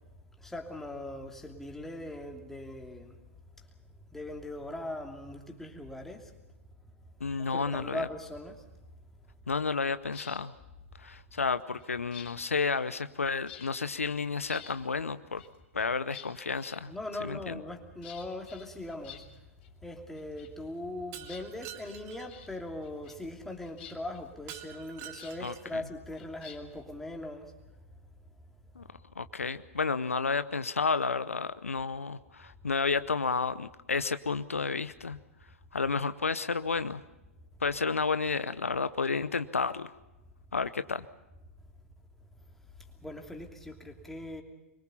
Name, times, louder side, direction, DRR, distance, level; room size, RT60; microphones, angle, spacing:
voice 1, 0.4-3.2 4.1-6.3 7.5-8.6 16.9-19.3 19.8-27.5 43.0-44.4, left 1 dB, 5° left, 2 dB, 2.9 m, -40 dB
voice 2, 7.2-8.1 9.5-10.5 11.0-15.4 15.7-16.9 17.2-17.6 25.4-25.8 28.8-28.9 29.2-35.2 35.7-37.0 37.6-39.9 40.5-41.1, left 4 dB, 75° left, 14 dB, 0.8 m, -31 dB
sound 1, 10.0-10.4 11.4-13.2 13.5-13.9 14.3-14.8 15.4-17.3 18.0-19.7 20.0-20.9 21.2-21.9 22.3-22.5 22.8-23.3 23.6-25.4 26.1-26.8, left 9 dB, 45° left, 3.4 m, -51 dB
Shatter, 21.1-22.3 24.5-25.8, right 11 dB, 35° right, 2.2 m, -46 dB
25.5 x 23.0 x 5.7 m, 0.99 s
figure-of-eight pair, 105°, 7 cm